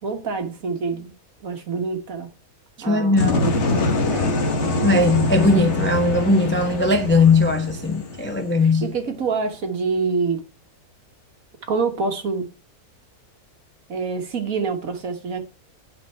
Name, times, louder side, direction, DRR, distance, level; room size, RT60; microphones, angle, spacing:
voice 1, 0.0-1.1 1.4-2.3 2.8-3.6 4.1-4.3 8.6-10.4 11.7-12.5 13.9-15.4, right 4 dB, 60° right, 1.7 m, -26 dB
voice 2, 2.9-3.5 4.8-8.9, left 3 dB, 15° left, 0.4 m, -19 dB
sound 1, 3.2-9.0, left 2 dB, 50° left, 1.5 m, -24 dB
11.5 x 4.1 x 4.4 m
omnidirectional pair, 1.6 m